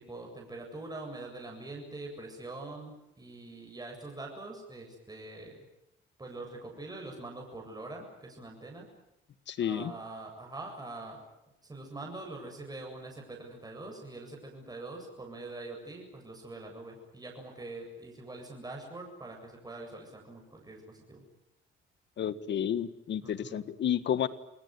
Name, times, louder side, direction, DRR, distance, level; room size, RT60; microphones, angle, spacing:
voice 1, 0.0-5.5 6.2-8.9 9.6-11.2 11.7-21.2 23.2-23.6, right 2 dB, 20° right, 1 dB, 8.0 m, -44 dB
voice 2, 9.5-9.9 22.2-24.3, left 9 dB, 65° left, 14 dB, 1.7 m, -31 dB
28.0 x 19.0 x 9.7 m, 0.86 s
cardioid pair, 90°, 20 cm